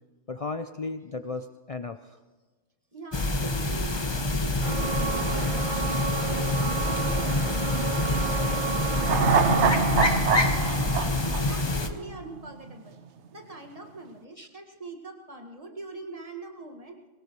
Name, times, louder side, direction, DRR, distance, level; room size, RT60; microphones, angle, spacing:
voice 1, 0.3-2.2 14.4-14.6, left 3 dB, 70° left, 9 dB, 0.3 m, -35 dB
voice 2, 2.9-5.8 6.2-7.5 7.9-10.9 11.2-13.0 13.3-17.0, right 2 dB, 30° right, 2 dB, 1.9 m, -43 dB
sound 1, 3.1-11.9, left 2 dB, 25° left, 0.8 m, -27 dB
sound 2, 4.6-9.8, right 6 dB, 45° right, 0.8 m, -31 dB
sound 3, 9.0-12.4 12.7-12.8, right 5 dB, 65° right, 1.1 m, -25 dB
22.5 x 18.0 x 3.1 m, 1.3 s
omnidirectional pair, 1.3 m